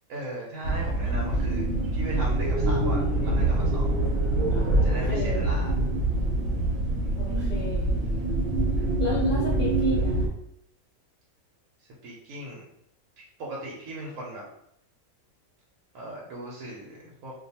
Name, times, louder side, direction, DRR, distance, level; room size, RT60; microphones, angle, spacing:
voice 1, 0.1-3.9 4.8-5.7 9.9-10.0 12.0-12.6 13.4-14.4 15.9-17.3, right 1 dB, 90° right, -4 dB, 1.1 m, -38 dB
sound 1, 0.6-10.3, right 2 dB, 70° right, 1.0 m, -25 dB
voice 2, 4.5-5.4 7.2-8.0 9.0-10.3, left 4 dB, 60° left, -6 dB, 0.5 m, -33 dB
2.4 x 2.2 x 2.7 m, 0.73 s
omnidirectional pair, 1.5 m